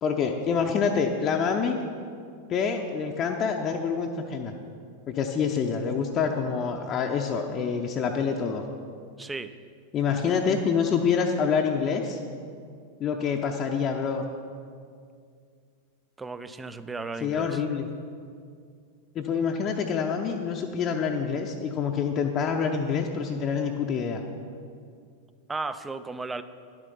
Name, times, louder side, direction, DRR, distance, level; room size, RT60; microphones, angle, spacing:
voice 1, 0.0-1.8 2.5-4.5 5.1-8.6 9.9-12.2 13.0-14.2 17.2-17.9 19.1-24.2, left 6 dB, 30° left, 2 dB, 0.7 m, -26 dB
voice 2, 9.2-9.5 16.2-17.6 25.5-26.4, right 3 dB, 10° right, 12 dB, 0.5 m, -35 dB
11.0 x 7.4 x 5.5 m, 2.2 s
figure-of-eight pair, 90°, 0 cm